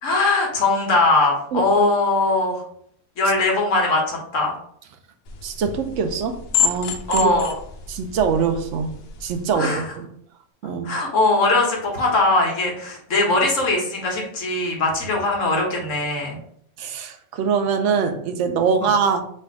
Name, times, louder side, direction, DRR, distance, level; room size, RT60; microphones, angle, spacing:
voice 1, 0.0-2.6 3.2-4.5 7.1-7.5 9.5-9.8 10.8-16.4 18.8-18.9, left 2 dB, 85° left, 0 dB, 1.5 m, -20 dB
sound 1, 5.3-9.5, left 6 dB, 65° left, 0.7 m, -28 dB
voice 2, 5.4-7.3 7.9-8.9 9.2-10.1 10.6-10.9 16.8-19.2, right 6 dB, 80° right, 6 dB, 0.9 m, -23 dB
3.4 x 2.5 x 4.5 m, 0.66 s
omnidirectional pair, 1.3 m